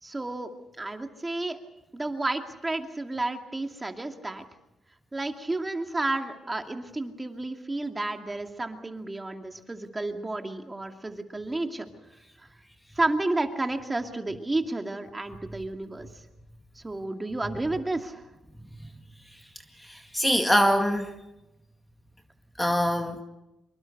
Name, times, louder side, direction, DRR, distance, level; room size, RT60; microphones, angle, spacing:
voice 1, 0.0-0.5 0.8-1.6 1.9-4.4 5.1-11.9 12.4-12.5 13.0-16.1 16.8-18.2, right 2 dB, 15° right, 5 dB, 2.4 m, -31 dB
voice 2, 19.8-21.1 22.6-23.2, equal, 5° left, 5 dB, 2.0 m, -24 dB
25.5 x 22.5 x 6.6 m, 0.97 s
cardioid pair, 90°, 0 cm